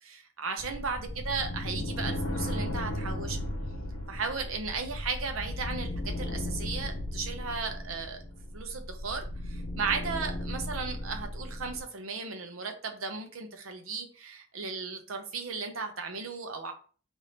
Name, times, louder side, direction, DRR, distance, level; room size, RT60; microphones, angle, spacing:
voice 1, 0.0-3.4 4.1-8.2 8.5-16.7, right 4 dB, 90° right, 5 dB, 0.8 m, -35 dB
sound 1, 0.6-11.8, left 1 dB, 90° left, 0.8 m, -36 dB
3.4 x 2.7 x 4.0 m, 0.39 s
head